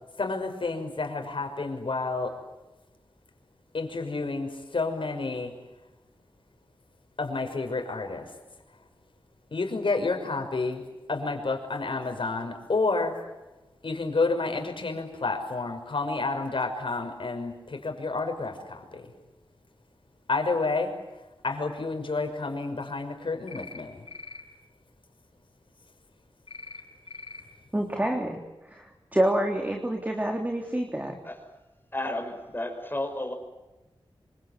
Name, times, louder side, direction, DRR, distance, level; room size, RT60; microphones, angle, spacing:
voice 1, 0.2-2.3 3.7-5.5 7.2-8.3 9.5-10.8 11.1-13.2 13.8-19.1 20.3-20.9 21.4-24.0, left 3 dB, 65° left, 5 dB, 5.9 m, -30 dB
sound 1, 23.5-23.8 24.1-24.4 26.5-26.8 27.1-27.4, left 3 dB, 85° left, 5.0 m, -42 dB
voice 2, 27.7-28.4 28.7-28.8 29.1-31.2, right 1 dB, 20° right, 2 dB, 3.3 m, -27 dB
voice 3, 31.9-33.3, left 1 dB, 25° left, 3 dB, 6.0 m, -32 dB
27.0 x 25.5 x 8.3 m, 1.1 s
wide cardioid pair, 70°, 9 cm